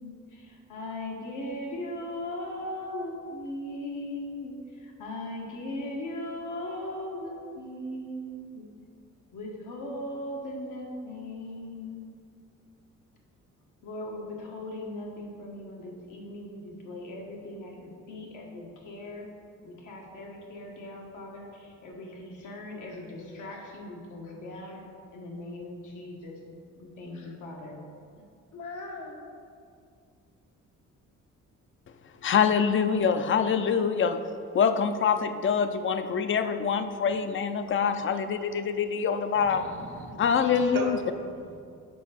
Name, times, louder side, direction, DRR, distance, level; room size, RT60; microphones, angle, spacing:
voice 1, 0.0-8.6 9.3-12.0 13.8-19.3 19.6-26.4 26.8-27.8 28.5-29.2, left 1 dB, 75° left, -1 dB, 1.5 m, -39 dB
voice 2, 32.2-34.2 34.5-39.6 40.2-41.0, left 6 dB, 40° left, 9 dB, 0.5 m, -25 dB
voice 3, 39.3-41.6, right 4 dB, 80° right, 2 dB, 1.3 m, -39 dB
6.2 x 4.8 x 5.8 m, 2.3 s
cardioid pair, 90°, 30 cm